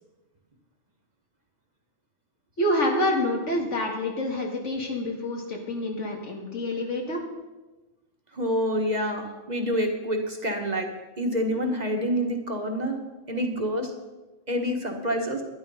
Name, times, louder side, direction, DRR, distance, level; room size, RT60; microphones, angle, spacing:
voice 1, 2.6-7.2, left 1 dB, 85° left, 1 dB, 2.5 m, -27 dB
voice 2, 8.3-10.9 11.2-13.0 13.3-13.9 14.5-15.4, equal, 35° right, 3 dB, 1.6 m, -27 dB
12.0 x 10.5 x 5.6 m, 1.1 s
omnidirectional pair, 1.2 m